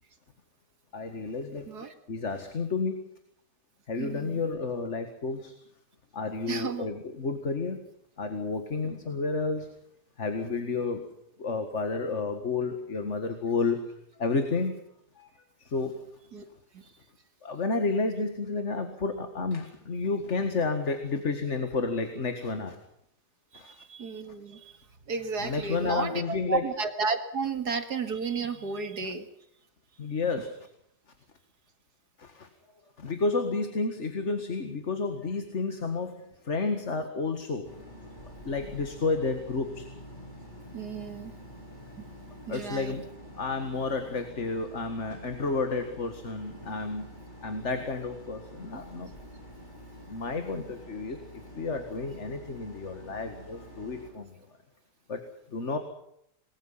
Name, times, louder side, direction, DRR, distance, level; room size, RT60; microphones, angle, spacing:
voice 1, 0.9-1.7 2.1-3.0 3.9-5.5 6.1-7.8 8.2-9.8 10.2-11.0 11.4-13.8 14.2-14.8 15.2-15.3 15.6-16.0 17.4-22.8 23.5-23.7 25.4-26.6 30.0-30.7 32.2-32.5 33.0-37.7 38.1-39.9 42.5-43.1 43.3-47.2 47.4-49.1 50.1-54.3 55.1-55.2 55.5-55.8, left 3 dB, 45° left, 7 dB, 2.1 m, -31 dB
voice 2, 4.0-4.4 6.5-6.9 16.3-16.4 16.7-16.8 23.6-24.7 25.1-29.3 40.7-41.3 42.0-42.1 42.5-42.9, right 5 dB, 70° right, 8 dB, 2.7 m, -33 dB
sound 1, 37.6-54.1, equal, 25° left, 5.2 m, -47 dB
26.5 x 21.5 x 5.7 m, 0.73 s
omnidirectional pair, 1.8 m